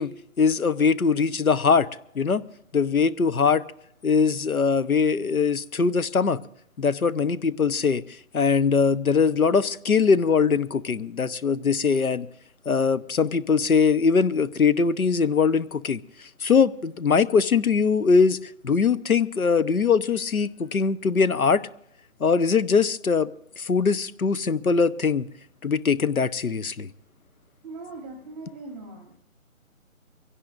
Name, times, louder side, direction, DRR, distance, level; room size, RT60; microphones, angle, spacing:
voice 1, 0.0-1.9 2.1-2.4 2.7-3.6 4.0-6.4 6.8-8.0 8.3-12.3 12.7-18.4 18.6-21.6 22.2-23.3 23.6-25.3 25.6-26.9, left 5 dB, 80° left, 1.0 m, -22 dB
voice 2, 27.6-29.2, right 3 dB, 10° right, 0.9 m, -40 dB
24.0 x 17.0 x 2.6 m
figure-of-eight pair, 155°, 42 cm